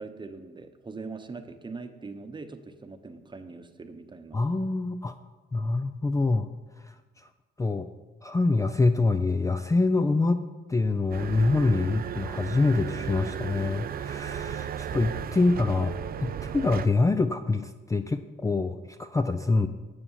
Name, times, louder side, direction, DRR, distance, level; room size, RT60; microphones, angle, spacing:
voice 1, 0.0-4.4, right 4 dB, 25° right, 8 dB, 0.9 m, -41 dB
voice 2, 4.3-5.1 5.5-6.5 6.8-6.9 7.6-7.9 8.2-10.4 10.7-15.9 16.2-19.7, left 3 dB, 15° left, 9 dB, 0.4 m, -25 dB
sound 1, 11.1-16.9, right 8 dB, 50° right, 0.5 m, -35 dB
9.8 x 6.9 x 5.5 m, 1.3 s
cardioid pair, 90°, 20 cm